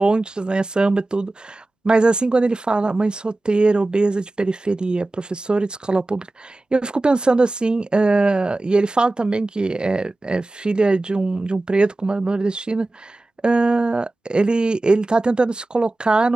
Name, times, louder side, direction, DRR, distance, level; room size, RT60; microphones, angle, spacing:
voice 1, 0.0-13.2 13.4-16.3, right 3 dB, 10° right, 1.1 m, -20 dB
hypercardioid pair, 105°, 11 cm